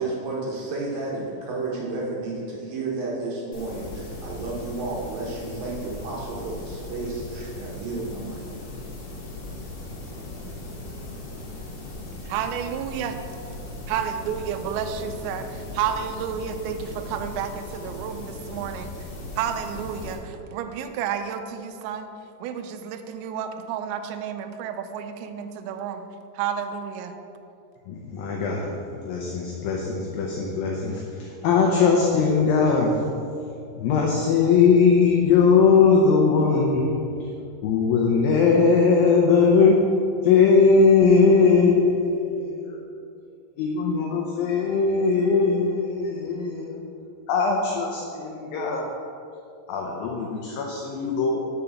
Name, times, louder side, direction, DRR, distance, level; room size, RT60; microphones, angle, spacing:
voice 1, 0.0-8.5, right 3 dB, 70° right, -3 dB, 2.3 m, -32 dB
sound 1, 3.5-20.1, left 2 dB, 55° left, 2.1 m, -38 dB
voice 2, 12.3-13.2 13.9-18.9 19.4-22.1 22.4-26.0 26.3-27.1, right 8 dB, 90° right, 8 dB, 2.8 m, -31 dB
voice 3, 27.9-33.0 33.7-37.3 37.6-39.8 40.2-42.9 43.6-46.9 47.3-48.9 49.7-51.4, left 5 dB, 85° left, -1 dB, 2.0 m, -20 dB
6.9 x 4.9 x 6.9 m, 2.6 s
omnidirectional pair, 5.1 m